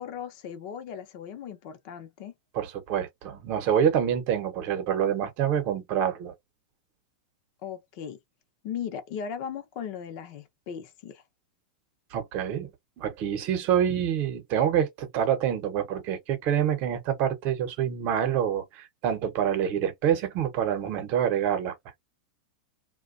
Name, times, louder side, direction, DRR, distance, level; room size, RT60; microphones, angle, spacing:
voice 1, 0.0-2.3 7.6-8.2 8.6-11.2, left 8 dB, 50° left, 0.7 m, -37 dB
voice 2, 2.5-6.3 12.1-12.7 13.0-21.7, right 9 dB, 45° right, 0.8 m, -26 dB
2.4 x 2.2 x 2.5 m
supercardioid pair, 135°, 4 cm